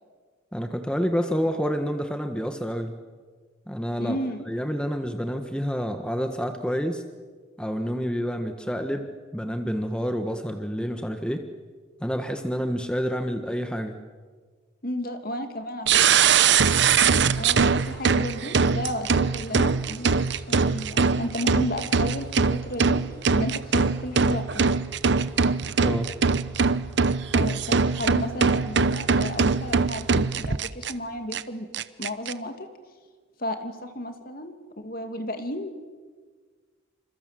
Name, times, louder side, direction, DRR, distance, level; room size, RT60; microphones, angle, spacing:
voice 1, 0.5-2.9 3.7-4.2 4.5-7.0 7.6-11.4 12.0-14.0 25.8-26.1, equal, 5° left, 6 dB, 1.5 m, -28 dB
voice 2, 4.0-4.4 14.8-16.2 17.4-23.0 23.3-24.8 27.3-31.7 32.0-32.7 33.4-35.9, left 1 dB, 45° left, 7 dB, 2.7 m, -33 dB
sound 1, 15.9-30.9 31.3-31.4 31.7-32.3, right 5 dB, 55° right, 0.9 m, -22 dB
28.5 x 26.5 x 7.7 m, 1.5 s
head